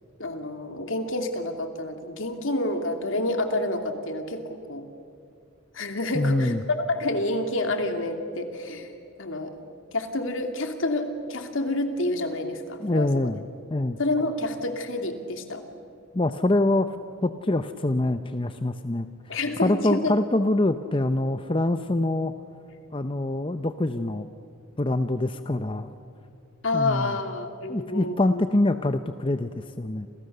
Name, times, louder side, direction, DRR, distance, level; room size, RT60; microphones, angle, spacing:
voice 1, 0.2-4.8 5.7-8.9 9.2-9.6 9.9-13.1 14.0-15.6 19.3-20.1 26.6-28.4, left 2 dB, 70° left, 5 dB, 2.7 m, -28 dB
voice 2, 6.1-6.6 12.8-13.4 13.7-14.0 16.1-16.9 17.2-19.1 19.6-22.3 22.9-24.3 24.8-25.9 26.7-27.1 27.7-30.1, left 2 dB, 25° left, 9 dB, 0.6 m, -25 dB
29.0 x 28.5 x 6.8 m, 2.6 s
head